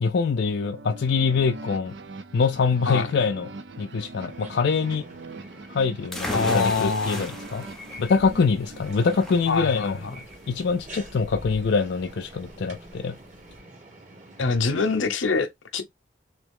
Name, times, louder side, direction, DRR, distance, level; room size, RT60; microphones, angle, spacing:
voice 1, 0.0-2.0 2.3-3.5 3.8-5.0 5.7-7.7 8.0-10.0 10.5-13.2, left 5 dB, 65° left, 0.4 m, -24 dB
sound 1, 0.6-9.4, right 2 dB, 65° right, 0.5 m, -42 dB
sound 2, 4.2-15.1, right 1 dB, 40° right, 1.8 m, -47 dB
sound 3, 6.1-13.6, left 1 dB, ahead, 0.7 m, -37 dB
voice 2, 6.3-7.2 9.5-10.3 14.4-15.8, left 4 dB, 85° left, 0.7 m, -25 dB
3.4 x 2.9 x 3.6 m
head